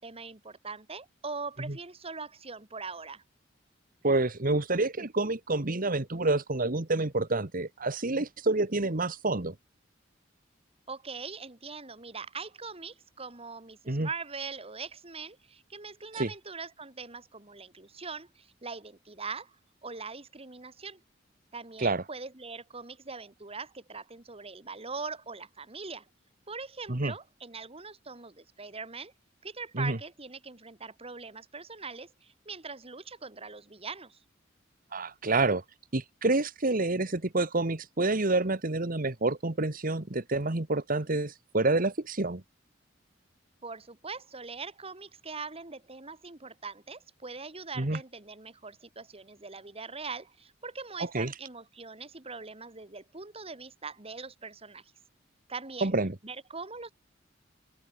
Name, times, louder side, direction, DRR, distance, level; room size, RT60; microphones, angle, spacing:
voice 1, 0.0-3.2 10.9-19.6 19.8-21.0 21.5-26.1 26.5-29.1 29.4-34.2 43.6-54.9 55.5-55.9 56.2-56.9, right 4 dB, 30° right, 2.7 m, -42 dB
voice 2, 4.0-9.5 13.9-14.1 16.1-16.3 21.8-22.0 26.9-27.1 29.7-30.0 34.9-35.6 35.9-42.4 47.8-48.0 51.0-51.3 55.8-56.1, right 2 dB, 50° right, 1.6 m, -28 dB
open air
head